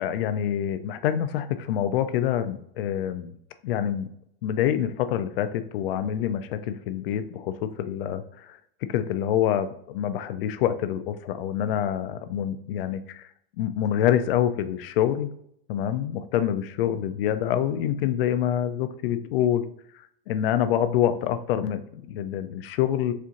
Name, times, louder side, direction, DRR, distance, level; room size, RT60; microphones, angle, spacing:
voice 1, 0.0-3.3 3.6-4.1 4.4-8.6 8.9-13.3 13.6-15.3 15.7-19.7 20.3-23.1, left 10 dB, 70° left, 11 dB, 0.5 m, -26 dB
4.4 x 2.6 x 2.5 m, 0.71 s
supercardioid pair, 150°, 29 cm